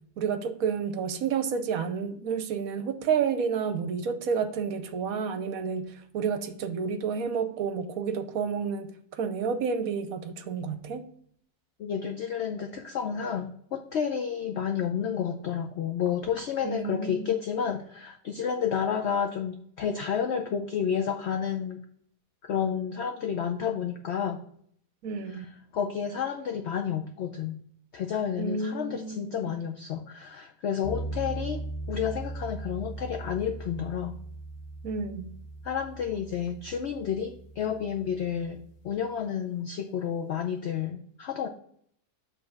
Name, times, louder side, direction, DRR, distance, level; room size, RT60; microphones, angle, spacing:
voice 1, 0.2-11.1 16.6-17.3 25.0-25.5 28.4-29.6 34.8-35.4, right 6 dB, 70° right, 9 dB, 1.1 m, -30 dB
voice 2, 11.8-21.8 22.4-24.4 25.3-25.5 25.7-27.6 27.9-31.6 31.9-34.2 35.6-41.5, left 8 dB, 75° left, 6 dB, 0.6 m, -30 dB
sound 1, 30.8-39.0, right 2 dB, 55° left, 0.9 m, -39 dB
7.5 x 3.3 x 5.8 m, 0.66 s
omnidirectional pair, 1.7 m